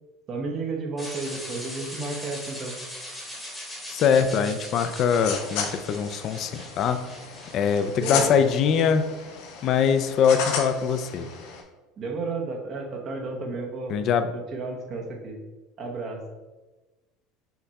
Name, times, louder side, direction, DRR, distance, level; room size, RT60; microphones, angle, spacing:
voice 1, 0.3-2.7 8.0-8.3 12.0-13.9 14.3-15.4 15.8-16.2, right 3 dB, 35° right, 1 dB, 0.9 m, -32 dB
sound 1, 1.0-9.0, left 1 dB, 5° left, 1.1 m, -40 dB
voice 2, 3.9-7.0 7.5-9.1 9.6-11.3 13.9-14.3, left 7 dB, 45° left, 9 dB, 0.3 m, -22 dB
sound 2, 4.8-11.6, left 6 dB, 70° left, 0.8 m, -35 dB
5.8 x 2.3 x 4.0 m, 1.2 s
cardioid pair, 140°, 0 cm